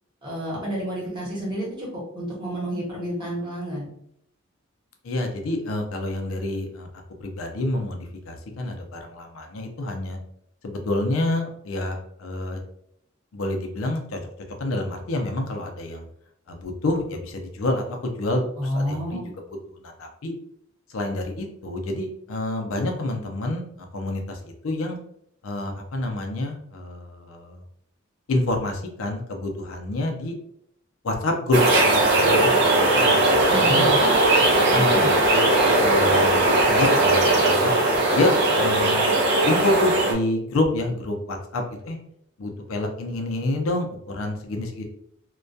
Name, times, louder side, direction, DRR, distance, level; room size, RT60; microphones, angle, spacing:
voice 1, 0.2-3.9 18.6-19.2 33.5-34.0 34.7-35.1, equal, 20° right, -5 dB, 0.9 m, -30 dB
voice 2, 5.0-6.9 7.2-10.2 10.6-12.6 13.3-14.2 14.6-16.1 16.5-19.2 19.8-20.3 20.9-25.0 25.4-27.6 28.3-30.3 31.0-33.1 33.5-33.9 34.7-35.5 35.8-37.7 38.1-39.2 39.5-42.0 42.4-44.8, left 2 dB, 80° left, 3 dB, 0.5 m, -28 dB
sound 1, 31.5-40.1, right 2 dB, 60° right, 0.5 m, -19 dB
2.2 x 2.2 x 2.6 m, 0.72 s
head